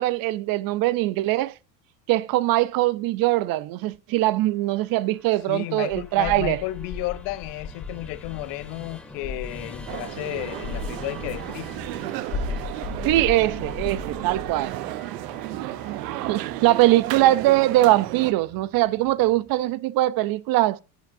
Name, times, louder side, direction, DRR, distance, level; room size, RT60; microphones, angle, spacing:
voice 1, 0.0-1.5 2.1-6.6 13.0-14.8 16.3-20.8, right 16 dB, 45° right, 0.6 m, -22 dB
Musical instrument, 4.5-19.8, left 1 dB, ahead, 2.1 m, -46 dB
voice 2, 5.5-11.7, left 18 dB, 60° left, 0.6 m, -32 dB
sound 1, 5.9-12.0 12.3-14.7, left 4 dB, 45° left, 1.9 m, -36 dB
sound 2, 9.9-18.3, right 16 dB, 80° right, 0.8 m, -33 dB
14.0 x 8.3 x 2.6 m
supercardioid pair, 100°, 49 cm